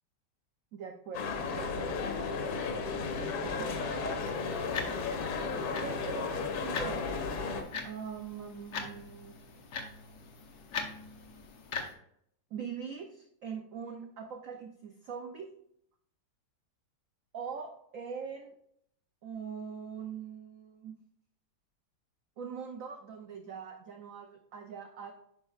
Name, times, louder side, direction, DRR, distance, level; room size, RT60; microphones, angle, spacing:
voice 1, 0.7-2.4 3.4-4.3 5.8-6.3 6.6-9.4 12.5-15.5 17.3-18.5 19.2-21.0 22.4-25.1, right 6 dB, 75° right, 4 dB, 0.7 m, -42 dB
sound 1, 1.1-7.6, left 4 dB, 85° left, 1.7 m, -34 dB
sound 2, 4.3-11.9, left 5 dB, 60° left, 1.3 m, -42 dB
9.4 x 5.4 x 2.4 m, 0.70 s
omnidirectional pair, 2.1 m